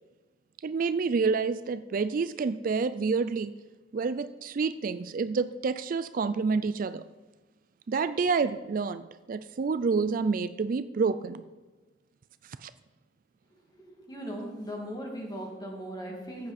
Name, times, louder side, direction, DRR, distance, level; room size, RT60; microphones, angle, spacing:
voice 1, 0.6-3.5 3.9-7.0 7.9-9.0 9.3-11.4 12.6-12.7, right 4 dB, 50° right, 13 dB, 0.4 m, -28 dB
voice 2, 13.9-16.5, equal, 25° left, 0 dB, 2.3 m, -38 dB
14.5 x 8.5 x 4.2 m, 1.2 s
head